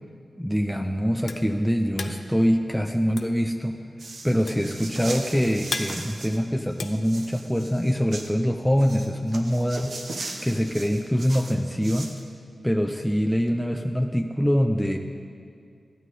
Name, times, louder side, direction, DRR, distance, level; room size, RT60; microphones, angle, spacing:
voice 1, 0.4-3.8 4.2-10.0 10.4-12.1 12.6-15.0, equal, ahead, 3 dB, 0.5 m, -24 dB
sound 1, 0.6-7.8, left 4 dB, 75° left, 0.5 m, -37 dB
sound 2, 4.0-6.4 6.7-8.3 8.8-12.2, right 2 dB, 65° right, 0.9 m, -38 dB
12.5 x 9.2 x 4.1 m, 2.3 s
wide cardioid pair, 95°, 0 cm